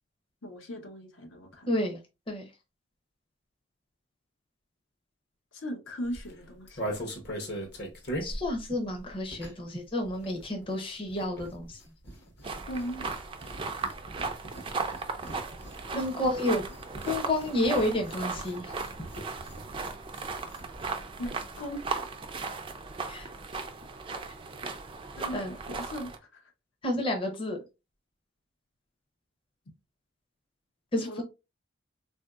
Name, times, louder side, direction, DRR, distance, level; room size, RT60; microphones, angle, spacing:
voice 1, 0.4-1.7 5.5-7.1 12.7-13.1 15.9-16.3 21.2-21.8 25.2-26.5 31.0-31.2, equal, 85° left, 0.8 m, -39 dB
voice 2, 1.7-2.0 2.3-2.4 8.2-11.8 16.0-16.7 17.1-18.7 23.1-23.3 25.3-25.6 26.8-27.6 30.9-31.2, left 1 dB, 25° left, 0.6 m, -30 dB
sound 1, 6.0-9.8 10.0-20.9 21.2-21.3 21.5-21.8, right 1 dB, 55° left, 0.9 m, -41 dB
sound 2, 12.4-26.2, right 4 dB, 25° right, 0.3 m, -37 dB
3.6 x 2.6 x 2.3 m
head